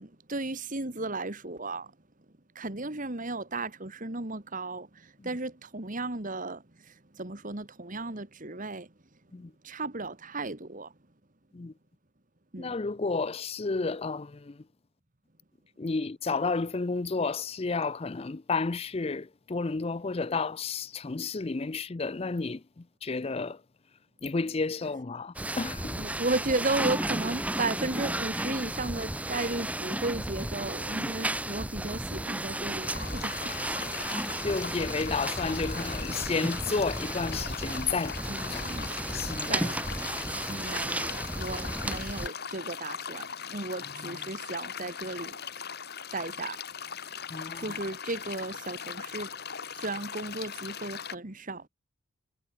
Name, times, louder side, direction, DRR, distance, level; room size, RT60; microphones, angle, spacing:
voice 1, 0.0-1.9 2.6-8.9 9.6-10.9 12.5-12.7 26.0-33.5 38.3-38.9 39.4-40.0 40.5-45.4 46.1-46.6 47.0-47.2 47.5-49.3 49.7-51.7, right 2 dB, 35° right, 1.7 m, -35 dB
voice 2, 12.6-14.6 15.8-23.6 24.2-26.0 34.4-38.2 38.5-38.7 39.1-39.7 44.0-44.2 47.3-47.8, left 4 dB, 25° left, 0.4 m, -32 dB
sound 1, 25.4-42.3, right 1 dB, 5° right, 1.3 m, -33 dB
sound 2, 32.8-51.1, left 7 dB, 45° left, 2.3 m, -40 dB
head